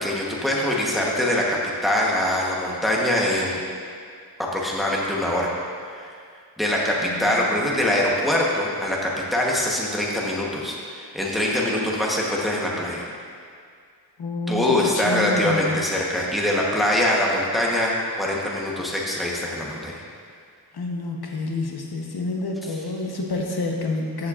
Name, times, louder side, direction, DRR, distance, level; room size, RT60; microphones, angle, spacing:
voice 1, 0.0-3.6 4.4-5.5 5.9-6.1 6.6-13.1 14.5-17.9 18.2-20.0, left 1 dB, ahead, -4 dB, 1.0 m, -23 dB
voice 2, 7.0-7.4 14.2-15.8 20.7-24.3, left 3 dB, 70° left, 0 dB, 1.0 m, -28 dB
14.0 x 7.5 x 2.5 m, 2.2 s
wide cardioid pair, 175°, 39 cm